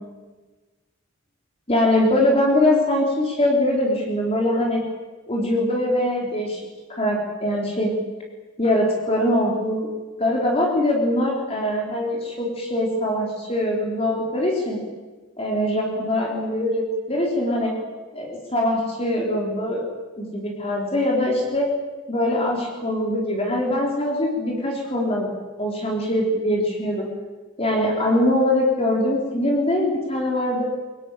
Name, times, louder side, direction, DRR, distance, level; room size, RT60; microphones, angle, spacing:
voice 1, 1.7-4.8 5.3-6.6 6.9-7.9 8.6-9.9 10.2-14.8 15.4-17.7 18.1-19.8 20.2-21.7 22.1-25.3 25.6-27.1 27.6-30.6, left 1 dB, 30° left, -1 dB, 4.1 m, -22 dB
24.5 x 18.5 x 9.2 m, 1.3 s
head